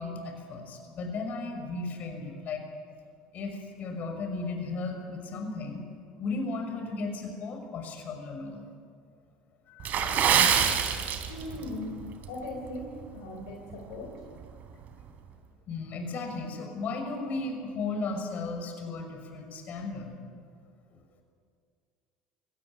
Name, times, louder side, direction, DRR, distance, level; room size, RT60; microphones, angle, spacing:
voice 1, 0.0-2.6 3.3-5.8 6.2-8.7 9.7-10.5 15.7-20.1, left 3 dB, 50° left, 4 dB, 5.9 m, -35 dB
Water / Splash splatter, 9.8-11.7 12.0-12.2 12.8-13.0 13.5-13.6, right 8 dB, 50° right, 3.4 m, -25 dB
voice 2, 11.3-11.9 12.3-14.2, left 2 dB, 80° left, 1 dB, 4.2 m, -39 dB
23.0 x 17.5 x 9.8 m, 2.2 s
hypercardioid pair, 85°, 4 cm